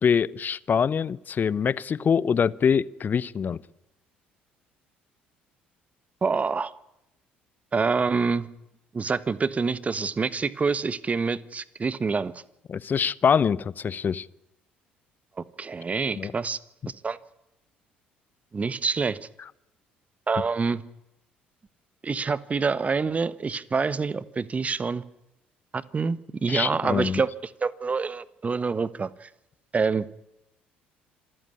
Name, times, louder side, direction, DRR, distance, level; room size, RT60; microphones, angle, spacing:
voice 1, 0.0-3.6 12.7-14.3 16.2-16.3 26.5-27.2, left 7 dB, 35° left, 0.8 m, -24 dB
voice 2, 6.2-6.7 7.7-8.5 8.9-12.4 15.4-16.6 17.0-17.2 18.5-19.2 20.3-20.8 22.0-25.0 25.7-29.3 29.7-30.2, right 4 dB, 25° right, 1.2 m, -26 dB
26.5 x 14.0 x 9.5 m
figure-of-eight pair, 55°, 5 cm